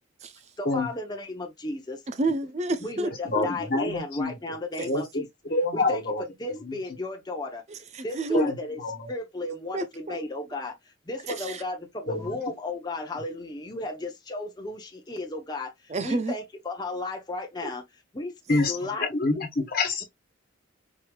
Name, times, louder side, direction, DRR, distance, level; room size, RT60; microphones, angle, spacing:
voice 1, 0.6-2.0 2.8-5.3 5.7-6.0 6.4-7.6 8.0-8.8 9.1-10.8 11.1-17.8 18.1-19.1, left 2 dB, 20° left, 0.7 m, -34 dB
voice 2, 2.1-3.1 3.3-3.4 4.8-4.9 7.7-8.5 9.7-10.2 11.2-11.6 15.9-16.4 17.6-17.7, right 2 dB, 35° right, 0.5 m, -30 dB
voice 3, 3.2-4.4 4.8-6.2 6.5-6.7 8.3-9.1 12.1-12.4 18.5-20.0, left 2 dB, 50° left, 1.3 m, -27 dB
4.6 x 3.3 x 2.3 m
head